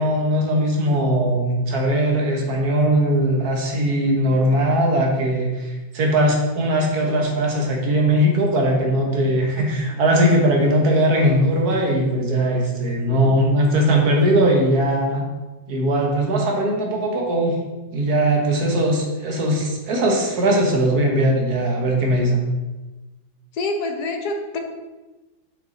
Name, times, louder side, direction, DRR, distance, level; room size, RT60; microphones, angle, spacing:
voice 1, 0.0-15.2 15.7-17.6 17.9-22.4, right 1 dB, 55° right, 0 dB, 1.5 m, -19 dB
voice 2, 23.5-24.6, left 2 dB, 65° left, 3 dB, 1.1 m, -26 dB
6.3 x 5.7 x 3.9 m, 1.1 s
omnidirectional pair, 2.2 m